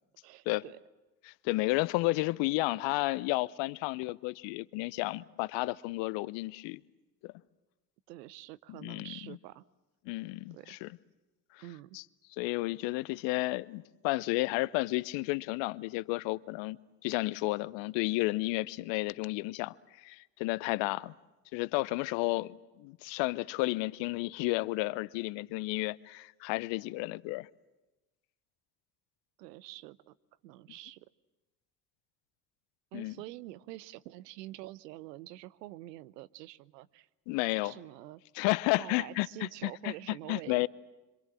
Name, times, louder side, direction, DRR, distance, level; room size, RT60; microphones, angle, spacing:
voice 1, 0.2-0.8 8.1-9.6 10.5-10.9 11.6-12.0 29.4-30.1 30.4-31.1 32.9-37.1 37.6-38.2 38.8-40.7, right 16 dB, 75° right, 0.8 m, -47 dB
voice 2, 1.3-6.8 7.2-7.3 8.8-9.4 10.1-10.9 11.5-11.6 11.9-12.0 12.4-21.1 21.5-27.5 32.9-33.1 37.3-37.7 38.4-39.3 39.6-39.9 40.3-40.7, left 21 dB, 60° left, 0.8 m, -32 dB
26.0 x 26.0 x 7.5 m
figure-of-eight pair, 50°, 49 cm